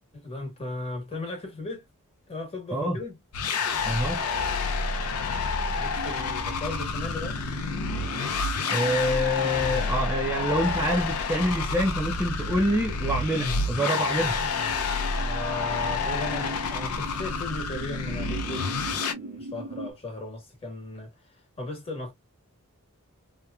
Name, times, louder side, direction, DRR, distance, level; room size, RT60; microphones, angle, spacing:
voice 1, 0.1-1.8 2.3-3.2 5.7-7.5 15.1-21.1 21.6-22.1, left 2 dB, 25° left, 1.2 m, -36 dB
voice 2, 2.7-3.0 3.8-4.2 8.7-14.4, equal, 10° right, 0.5 m, -26 dB
sound 1, 3.3-19.1, left 4 dB, 75° left, 0.5 m, -29 dB
sound 2, 5.9-19.9, right 1 dB, 65° right, 0.5 m, -42 dB
2.9 x 2.1 x 2.2 m
head